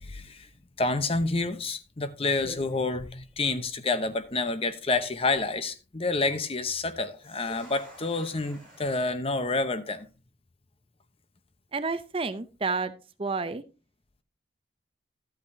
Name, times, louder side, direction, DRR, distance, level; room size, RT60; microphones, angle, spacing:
voice 1, 0.0-0.5 0.8-10.1, left 3 dB, 30° left, 0.8 m, -28 dB
sound 1, 1.8-2.0 2.3-3.9 4.2-4.3 4.9-5.3 7.0-9.1, equal, 5° left, 5.5 m, -50 dB
voice 2, 11.7-12.9 13.2-13.6, right 4 dB, 30° right, 0.6 m, -30 dB
13.0 x 8.5 x 2.7 m
head